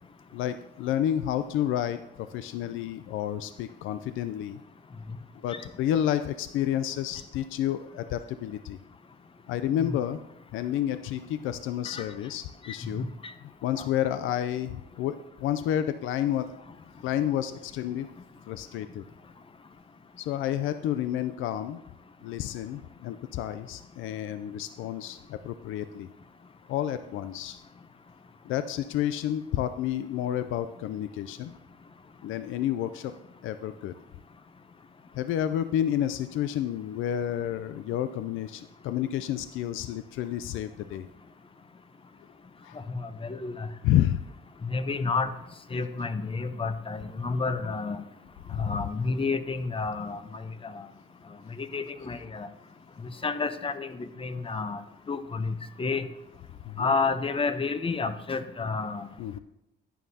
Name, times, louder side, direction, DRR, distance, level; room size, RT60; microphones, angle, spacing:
voice 1, 0.3-4.6 5.4-8.8 9.5-10.2 10.5-13.1 13.6-16.5 17.0-18.1 18.5-19.0 20.2-21.8 22.2-26.1 26.7-27.6 28.5-31.5 32.2-33.1 33.4-33.9 35.2-41.1 42.6-42.8 43.8-44.2 48.5-48.9 56.7-56.9 59.2-59.4, left 11 dB, 85° left, 11 dB, 0.4 m, -30 dB
voice 2, 12.7-13.1 13.8-13.9 42.9-43.7 44.6-45.3 45.7-48.0 48.6-50.8 51.6-52.5 53.2-54.8 55.1-56.1 56.8-59.1, left 4 dB, 25° left, 11 dB, 0.7 m, -30 dB
11.5 x 9.2 x 2.8 m, 0.90 s
cardioid pair, 90°, 20 cm